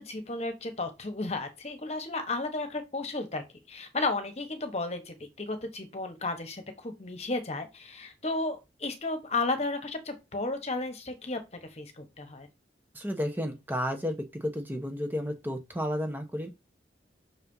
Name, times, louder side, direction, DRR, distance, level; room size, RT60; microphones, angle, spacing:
voice 1, 0.0-12.5, left 2 dB, 35° left, 1.3 m, -33 dB
voice 2, 12.9-16.5, equal, 10° right, 1.0 m, -32 dB
5.9 x 4.2 x 5.5 m
head